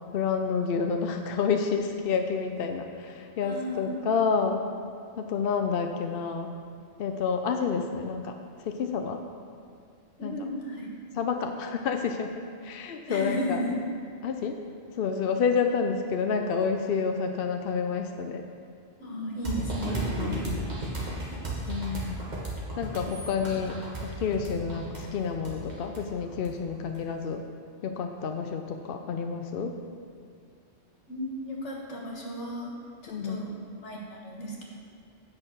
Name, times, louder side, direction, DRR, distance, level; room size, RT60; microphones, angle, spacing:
voice 1, 0.1-4.6 5.2-6.5 7.0-8.3 8.6-9.2 10.2-10.4 11.2-13.6 14.2-14.6 15.0-18.4 19.9-20.7 21.7-22.2 22.8-27.4 27.8-29.7 33.1-33.4, left 5 dB, 60° left, 5 dB, 0.7 m, -29 dB
voice 2, 3.4-4.0 10.2-10.9 13.1-13.8 19.0-20.1 20.6-20.7 21.0-21.2 31.1-32.7 33.0-33.5 33.8-34.6, equal, 75° left, -2 dB, 1.9 m, -34 dB
sound 1, 19.4-27.0, right 2 dB, 35° right, 1.8 m, -34 dB
8.9 x 5.8 x 6.3 m, 2.3 s
omnidirectional pair, 1.2 m